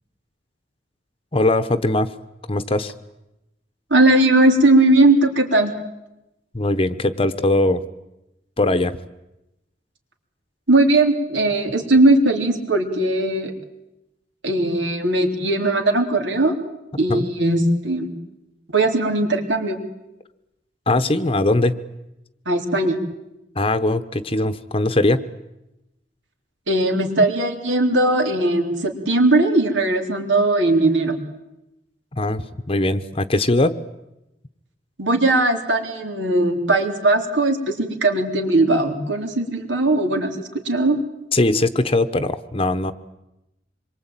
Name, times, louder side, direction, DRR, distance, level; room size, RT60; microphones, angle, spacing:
voice 1, 1.3-2.1 2.5-2.9 6.5-7.8 8.6-9.0 17.1-17.3 20.9-21.7 23.6-25.2 32.1-33.8 41.3-42.9, left 2 dB, 30° left, 10 dB, 1.0 m, -20 dB
voice 2, 3.9-5.7 10.7-13.5 14.4-16.5 17.0-18.1 18.7-19.8 22.5-23.0 26.7-31.2 35.0-40.4 40.7-41.0, right 2 dB, 85° right, 4 dB, 3.8 m, -18 dB
26.0 x 23.0 x 9.0 m, 0.92 s
head